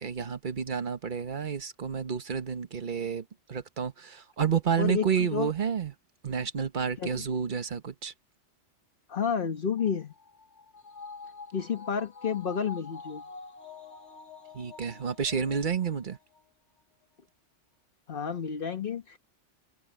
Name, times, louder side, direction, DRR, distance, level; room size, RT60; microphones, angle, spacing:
voice 1, 0.0-5.9 6.2-8.1 14.5-16.2, right 7 dB, 40° right, 1.3 m, -30 dB
voice 2, 4.8-5.5 7.0-7.1 9.1-10.1 11.5-13.2 18.1-19.2, left 7 dB, 45° left, 1.4 m, -30 dB
sound 1, 9.8-16.4 16.8-16.9, left 4 dB, 65° left, 1.8 m, -47 dB
omnidirectional pair, 1.3 m